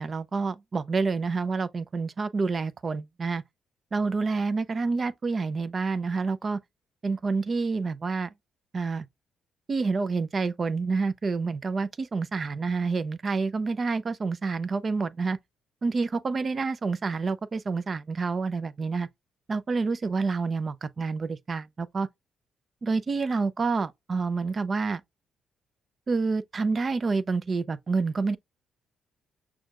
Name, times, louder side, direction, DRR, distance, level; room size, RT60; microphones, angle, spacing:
voice 1, 0.0-3.4 3.9-6.6 7.0-8.3 8.7-9.1 9.7-15.4 15.8-19.1 19.5-22.1 22.8-25.0 26.1-28.4, right 4 dB, 35° right, 0.5 m, -28 dB
6.1 x 2.3 x 2.4 m
cardioid pair, 90°, 0 cm